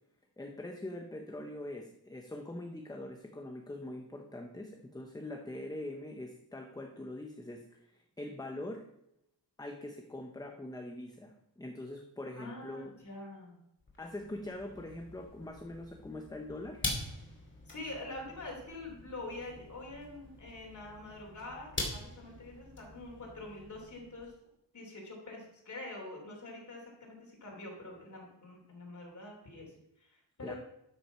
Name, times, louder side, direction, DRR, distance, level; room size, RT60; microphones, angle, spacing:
voice 1, 0.4-8.8 9.6-12.9 14.0-16.9 30.4-30.6, left 1 dB, 10° left, 4 dB, 0.7 m, -43 dB
voice 2, 12.3-13.6 17.7-24.3 24.7-30.6, left 2 dB, 45° left, -1 dB, 3.0 m, -45 dB
sound 1, 13.8-24.3, left 2 dB, 25° left, 2.4 m, -44 dB
12.5 x 6.1 x 5.6 m, 0.81 s
wide cardioid pair, 175°, 42 cm